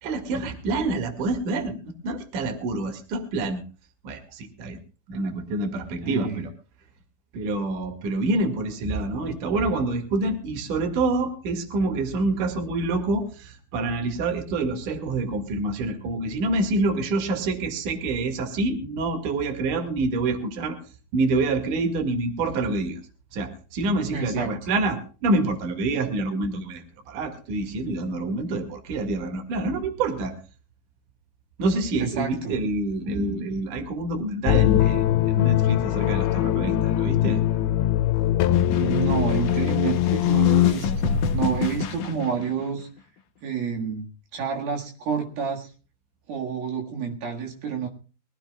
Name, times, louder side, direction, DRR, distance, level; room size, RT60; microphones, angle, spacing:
voice 1, 0.0-3.6 4.0-4.8 5.1-6.5 7.3-20.8 21.1-23.0 23.3-30.4 31.6-37.4, right 2 dB, 60° right, 6 dB, 3.4 m, -27 dB
voice 2, 6.0-6.4 24.1-24.5 32.0-32.6 38.7-42.9 43.4-44.1 44.3-45.7 46.3-47.9, right 7 dB, 75° right, 1 dB, 3.6 m, -29 dB
sound 1, 34.5-40.7, left 12 dB, 85° left, 2.7 m, -21 dB
sound 2, 38.5-42.8, left 5 dB, 65° left, 2.0 m, -29 dB
23.0 x 16.0 x 2.3 m, 0.35 s
omnidirectional pair, 4.3 m